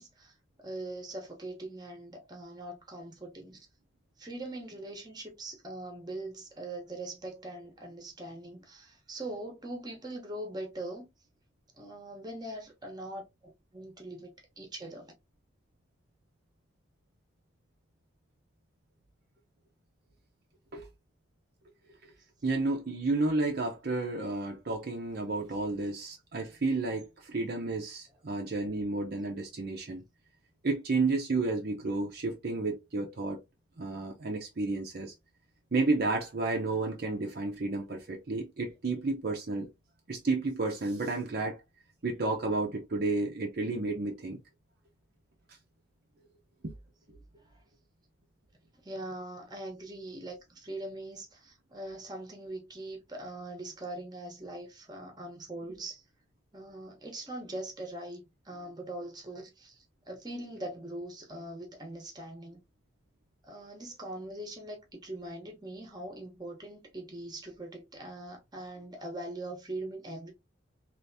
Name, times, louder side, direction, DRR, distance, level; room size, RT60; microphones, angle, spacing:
voice 1, 0.0-3.6 4.2-11.1 11.8-15.1 47.5-47.6 48.8-56.0 56.5-62.6 63.4-70.3, right 1 dB, 20° right, 0.8 m, -42 dB
voice 2, 22.4-30.0 30.6-33.4 33.8-35.1 35.7-39.7 40.1-41.6 42.0-44.4, right 3 dB, 50° right, 0.5 m, -31 dB
3.4 x 2.5 x 2.6 m
head